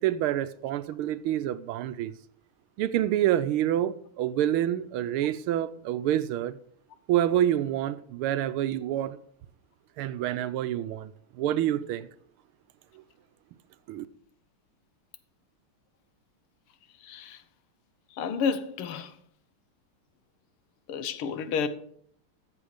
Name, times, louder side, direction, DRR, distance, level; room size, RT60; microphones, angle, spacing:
voice 1, 0.0-2.1 2.8-6.6 7.1-9.2 10.0-11.1 11.4-12.1 13.9-14.1, right 12 dB, 80° right, 1.5 m, -27 dB
voice 2, 17.0-17.4 18.2-19.1 20.9-21.7, left 6 dB, 80° left, 1.8 m, -30 dB
13.5 x 7.7 x 5.0 m
omnidirectional pair, 2.4 m